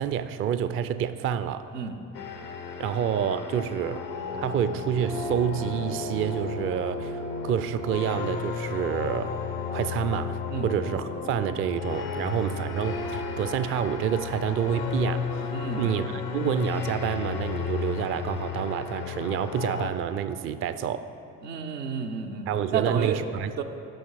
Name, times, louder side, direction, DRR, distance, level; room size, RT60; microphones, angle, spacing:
voice 1, 0.0-1.7 2.8-4.1 4.4-9.4 9.7-15.3 15.8-21.1 22.5-23.6, right 9 dB, 30° right, 12 dB, 0.4 m, -28 dB
sound 1, 2.1-19.9, left 5 dB, 85° left, 0.8 m, -33 dB
voice 2, 15.5-16.0 21.4-22.5 22.7-23.2 23.6-23.7, right 6 dB, 80° right, 4 dB, 0.8 m, -31 dB
14.0 x 5.8 x 4.6 m, 2.8 s
figure-of-eight pair, 50°, 47 cm